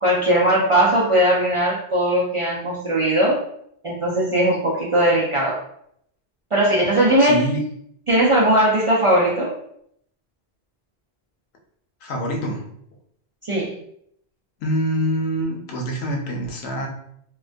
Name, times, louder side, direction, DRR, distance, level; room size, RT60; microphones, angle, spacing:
voice 1, 0.0-3.4 3.8-5.6 6.5-7.5 8.1-9.5 13.4-13.7, right 1 dB, 50° right, -6 dB, 0.4 m, -19 dB
voice 2, 7.2-7.6 12.0-12.6 14.6-16.9, equal, 80° left, 1 dB, 0.8 m, -25 dB
2.3 x 2.2 x 2.4 m, 0.71 s
omnidirectional pair, 1.1 m